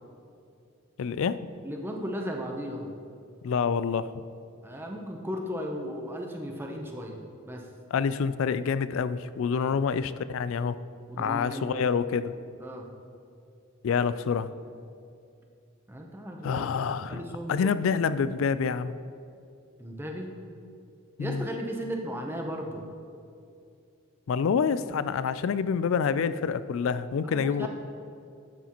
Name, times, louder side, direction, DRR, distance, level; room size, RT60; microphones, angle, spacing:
voice 1, 1.0-1.5 3.4-4.1 7.9-10.8 11.2-12.3 13.8-14.5 16.4-17.2 17.5-19.0 21.2-21.5 24.3-27.7, left 6 dB, 65° left, 14 dB, 0.3 m, -27 dB
voice 2, 1.6-2.9 4.6-7.2 7.5-7.7 9.5-9.8 11.1-11.9 12.6-12.9 15.9-17.7 19.8-20.3 21.2-22.8 27.2-27.7, equal, 10° right, 1 dB, 0.7 m, -36 dB
11.0 x 8.2 x 3.0 m, 2.5 s
head